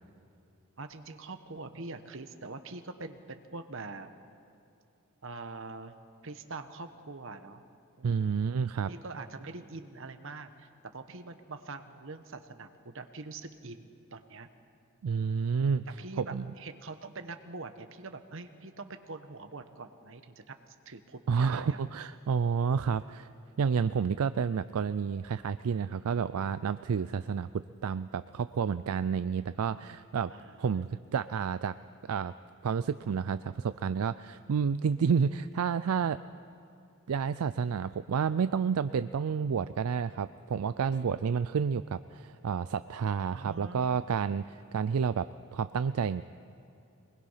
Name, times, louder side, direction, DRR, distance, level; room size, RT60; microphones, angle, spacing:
voice 1, 0.8-4.1 5.2-5.9 6.2-7.6 8.0-8.4 8.9-14.5 15.5-21.8 30.3-30.8 43.3-44.0, right 3 dB, 60° right, 8 dB, 1.1 m, -44 dB
voice 2, 8.0-8.9 15.0-15.9 16.2-16.4 21.3-23.3 23.6-30.3 30.6-31.7 32.1-32.3 32.6-36.2 37.1-46.2, right 6 dB, 75° right, 13 dB, 0.4 m, -30 dB
23.5 x 20.5 x 5.7 m, 2.8 s
head